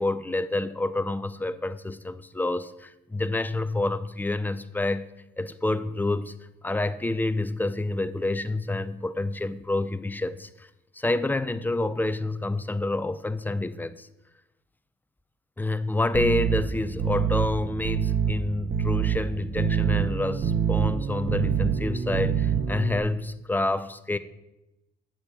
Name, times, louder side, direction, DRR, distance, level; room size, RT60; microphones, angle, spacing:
voice 1, 0.0-5.1 5.4-6.3 6.6-10.7 10.9-14.1 15.6-24.2, left 2 dB, 10° left, 0.5 m, -28 dB
sound 1, 16.1-23.0, right 7 dB, 45° right, 1.0 m, -26 dB
9.0 x 7.0 x 5.0 m
cardioid pair, 90°, 20 cm